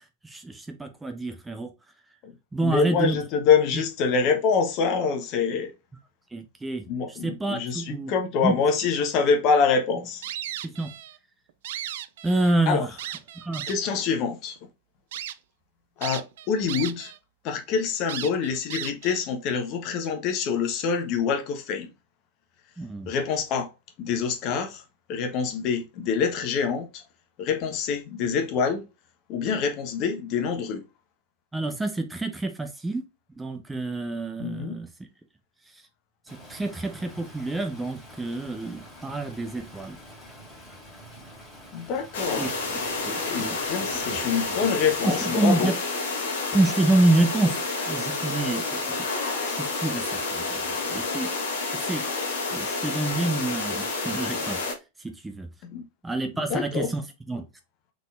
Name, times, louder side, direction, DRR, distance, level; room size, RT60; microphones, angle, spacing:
voice 1, 0.2-1.7 2.5-3.2 3.7-3.8 6.3-8.1 8.4-8.5 10.6-10.9 12.2-12.9 13.4-13.6 22.8-23.1 31.5-33.0 33.4-34.9 36.5-40.0 42.3-43.6 44.1-44.2 45.0-45.7 46.5-49.1 49.4-51.3 51.7-52.0 52.5-54.6 55.0-55.5 56.0-57.0 57.3-57.5, right 2 dB, 10° right, 0.6 m, -27 dB
voice 2, 2.6-5.7 6.9-10.2 12.7-12.9 13.7-14.6 16.0-17.1 17.4-21.9 23.1-23.7 24.0-24.8 25.1-27.0 27.4-28.8 29.3-30.8 34.4-34.8 41.7-42.5 43.2-45.7 55.7-55.8 56.4-56.9, left 6 dB, 45° left, 0.9 m, -25 dB
sound 1, 10.2-11.2 11.5-12.6 13.0-14.0 14.6-14.7 15.1-15.4 16.0-17.2 17.5-17.6 18.1-19.2, right 11 dB, 60° right, 0.3 m, -35 dB
Stream, 36.3-45.6, equal, 10° left, 2.1 m, -47 dB
sound 2, 42.1-54.7, left 3 dB, 60° left, 1.2 m, -29 dB
3.8 x 3.7 x 2.3 m
figure-of-eight pair, 90°, 0 cm